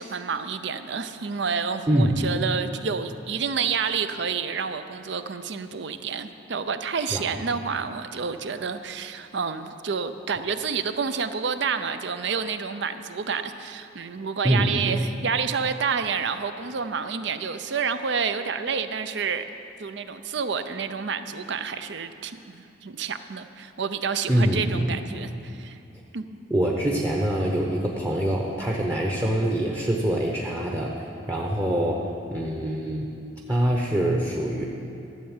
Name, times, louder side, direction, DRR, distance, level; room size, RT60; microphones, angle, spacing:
voice 1, 0.0-19.4 19.8-25.8 26.1-26.2, right 6 dB, 60° right, 10 dB, 0.6 m, -29 dB
voice 2, 1.9-2.3 7.1-7.3 14.4-14.8 24.3-24.9 26.5-30.9 31.3-33.1 33.5-34.7, right 1 dB, 15° right, -1 dB, 0.8 m, -24 dB
12.5 x 7.8 x 7.3 m, 2.7 s
head